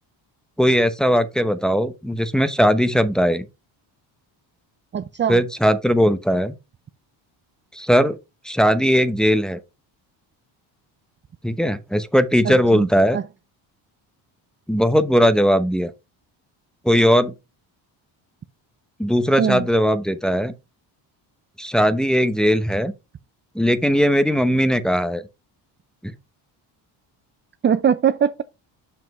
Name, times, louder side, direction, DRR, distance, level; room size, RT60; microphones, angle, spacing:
voice 1, 0.6-3.4 5.3-6.5 7.7-8.2 8.4-9.6 11.4-13.2 14.7-15.9 16.8-17.3 19.0-20.5 21.6-22.9 23.5-25.2 26.0-26.1, equal, ahead, 0.9 m, -19 dB
voice 2, 4.9-5.4 12.4-12.9 13.1-13.2 19.4-19.6 27.6-28.4, right 8 dB, 25° right, 0.4 m, -21 dB
7.2 x 5.9 x 3.0 m
cardioid pair, 95°, 48 cm